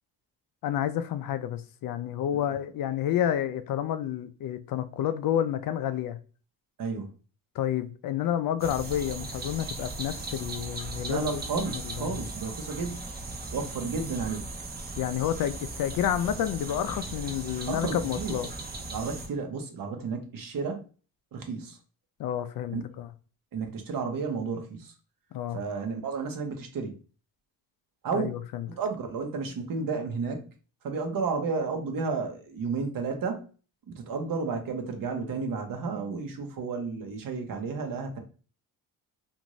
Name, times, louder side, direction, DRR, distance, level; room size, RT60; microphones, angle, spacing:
voice 1, 0.6-6.2 7.6-12.2 15.0-18.5 22.2-23.1 25.3-25.6 28.1-28.7, left 10 dB, 60° left, 0.5 m, -30 dB
voice 2, 6.8-7.1 11.1-13.1 13.5-14.5 17.7-18.4 18.9-20.8 21.3-21.8 22.7-22.8 23.5-24.9 25.5-27.0 28.0-28.4 28.7-30.5 30.8-33.5 33.9-38.2, right 4 dB, 55° right, 0.9 m, -32 dB
sound 1, 8.6-19.3, right 2 dB, 25° right, 0.7 m, -38 dB
2.6 x 2.5 x 3.0 m
cardioid pair, 85°, 40 cm